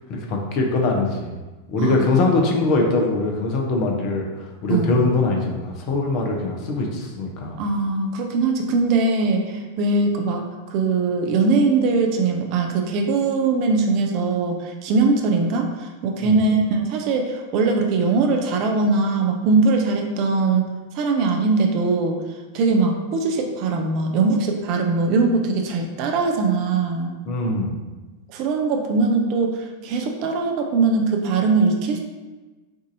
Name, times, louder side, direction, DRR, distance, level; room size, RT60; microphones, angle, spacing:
voice 1, 0.1-1.4 1.7-4.3 4.6-7.6 16.3-16.4 27.2-27.8, left 2 dB, 40° left, 0 dB, 0.8 m, -22 dB
voice 2, 4.7-5.0 7.6-20.7 20.9-22.2 22.5-27.2 28.3-32.0, right 3 dB, 40° right, 3 dB, 0.5 m, -21 dB
6.1 x 2.7 x 2.6 m, 1.2 s
figure-of-eight pair, 90°, 0 cm